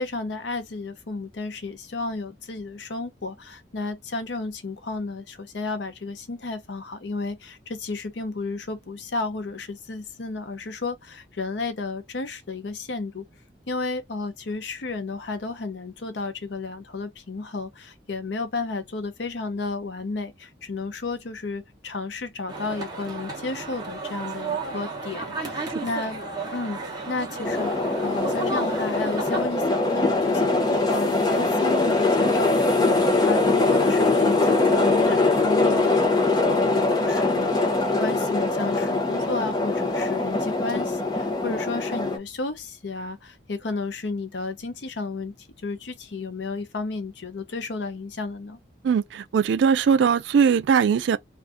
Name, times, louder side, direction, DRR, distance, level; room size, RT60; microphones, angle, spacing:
voice 1, 0.0-13.2 13.7-26.2 26.5-26.8 27.1-27.7 28.0-45.3 45.6-48.6, left 3 dB, 80° left, 0.7 m, -32 dB
sound 1, 22.5-29.4, right 3 dB, 20° right, 0.9 m, -33 dB
sound 2, 27.4-42.2, left 2 dB, 20° left, 0.7 m, -22 dB
voice 2, 48.8-51.2, right 6 dB, 80° right, 0.3 m, -20 dB
2.6 x 2.4 x 3.4 m
head